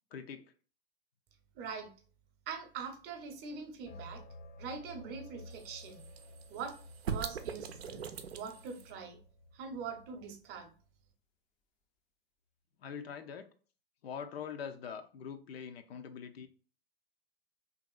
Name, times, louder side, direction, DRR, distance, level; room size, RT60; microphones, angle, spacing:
voice 1, 0.1-0.5 12.8-13.5 14.0-16.5, left 7 dB, 80° left, 7 dB, 0.5 m, -43 dB
voice 2, 1.5-1.9 2.5-4.2 4.6-6.0 6.5-6.8 7.1-8.0 8.3-9.2 9.5-10.7, right 5 dB, 35° right, 6 dB, 0.7 m, -43 dB
sound 1, 3.9-10.4, left 1 dB, 25° left, 0.4 m, -53 dB
sound 2, 5.5-8.9, right 7 dB, 85° right, 0.5 m, -42 dB
2.8 x 2.6 x 2.4 m, 0.40 s
hypercardioid pair, 105°, 31 cm